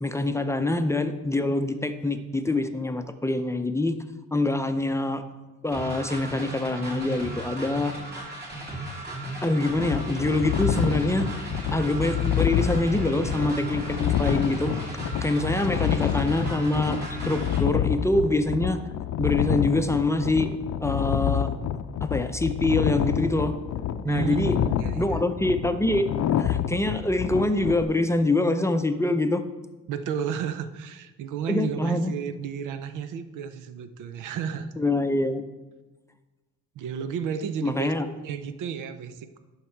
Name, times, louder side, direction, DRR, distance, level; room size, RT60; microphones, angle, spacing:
voice 1, 0.0-4.0 4.3-5.2 5.6-8.0 9.4-11.3 11.7-14.7 15.2-18.8 19.2-20.5 20.8-21.5 22.0-23.5 24.0-24.6 25.0-26.1 26.4-29.4 31.5-32.1 34.8-35.4 37.6-38.1, left 2 dB, 10° left, 8 dB, 0.6 m, -25 dB
sound 1, 5.7-17.6, right 1 dB, 35° right, 2.8 m, -36 dB
sound 2, 9.7-27.8, left 10 dB, 65° left, 0.6 m, -28 dB
voice 2, 15.9-16.4 24.1-25.2 29.9-34.7 36.8-37.9 38.2-39.4, right 7 dB, 85° right, 12 dB, 0.7 m, -32 dB
11.0 x 5.7 x 4.5 m, 1.2 s
cardioid pair, 90°, 30 cm